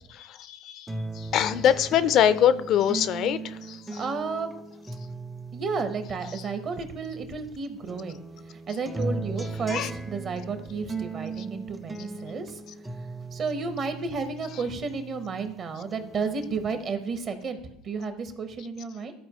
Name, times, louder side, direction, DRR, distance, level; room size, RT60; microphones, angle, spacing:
voice 1, 0.1-0.9 1.2-4.0 9.7-9.9, left 9 dB, 55° left, 14 dB, 0.4 m, -24 dB
sound 1, 0.9-7.5 7.9-15.5 15.9-16.9, right 3 dB, 10° right, 0.5 m, -38 dB
voice 2, 3.9-4.5 5.5-8.2 8.5-12.6 13.3-19.1, right 4 dB, 45° right, 8 dB, 1.1 m, -32 dB
12.5 x 4.3 x 3.1 m, 0.79 s
hypercardioid pair, 80°, 0 cm